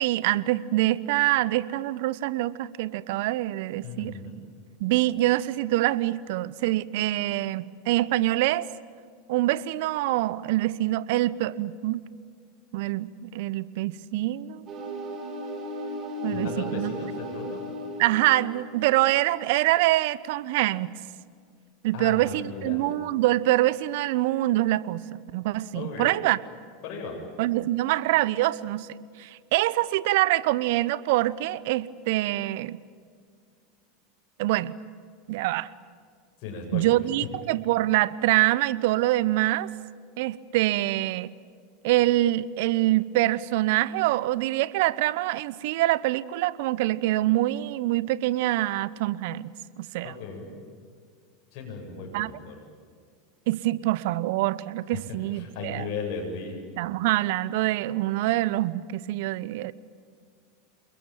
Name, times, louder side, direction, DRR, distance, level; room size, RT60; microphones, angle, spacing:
voice 1, 0.0-4.1 4.8-8.7 9.3-12.0 12.7-14.6 16.2-16.9 18.0-20.9 21.8-26.4 27.4-28.9 29.2-32.8 34.4-34.7 35.3-35.7 36.7-39.7 40.2-41.3 41.8-49.5 49.8-50.1 52.1-52.3 53.5-55.9 56.8-59.7, right 16 dB, 65° right, 18 dB, 1.0 m, -25 dB
voice 2, 3.8-4.3 16.3-17.6 21.9-22.8 25.7-26.2 26.8-27.2 36.4-36.9 50.0-50.5 51.5-52.5 54.9-55.0 55.3-56.6, left 4 dB, 55° left, -1 dB, 7.7 m, -36 dB
sound 1, 14.7-19.8, left 1 dB, 35° right, 6.6 m, -36 dB
28.5 x 21.5 x 9.3 m, 2.1 s
hypercardioid pair, 90°, 0 cm